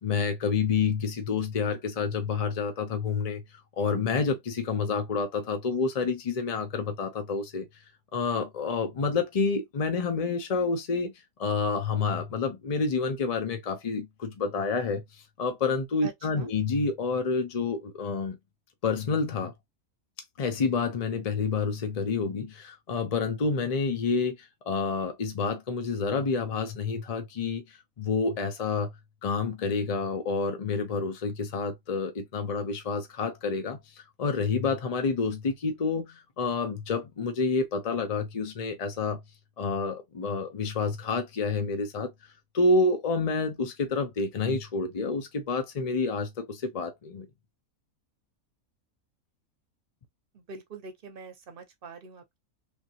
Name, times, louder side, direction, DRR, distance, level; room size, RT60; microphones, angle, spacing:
voice 1, 0.0-3.4 3.8-7.7 8.1-11.1 11.4-15.0 15.4-18.4 18.8-19.5 20.4-28.9 29.2-39.2 39.6-42.1 42.5-47.3, left 4 dB, 50° left, 0.4 m, -28 dB
voice 2, 16.0-16.5 50.3-52.4, right 4 dB, 45° right, 0.9 m, -44 dB
3.3 x 2.6 x 2.8 m
omnidirectional pair, 1.5 m